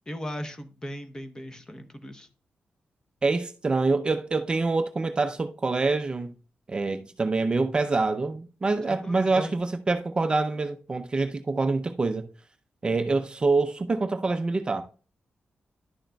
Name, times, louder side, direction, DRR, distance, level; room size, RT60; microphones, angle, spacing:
voice 1, 0.1-2.3 8.8-9.5, equal, 20° left, 0.9 m, -38 dB
voice 2, 3.2-6.3 6.7-12.3 12.8-14.9, right 3 dB, 25° right, 0.5 m, -26 dB
11.0 x 6.4 x 2.3 m
wide cardioid pair, 140°, 3 cm